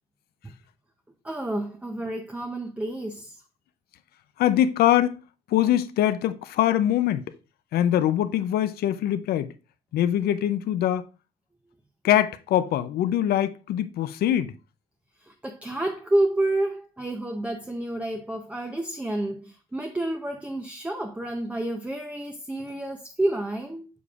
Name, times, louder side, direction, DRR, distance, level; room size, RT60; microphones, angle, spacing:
voice 1, 1.2-3.4 15.2-23.9, right 1 dB, 10° right, 0.6 m, -29 dB
voice 2, 4.4-5.2 5.5-7.2 7.7-9.5 9.9-11.1 12.0-14.5, left 11 dB, 65° left, 0.5 m, -23 dB
6.9 x 6.6 x 2.4 m
cardioid pair, 110°, 17 cm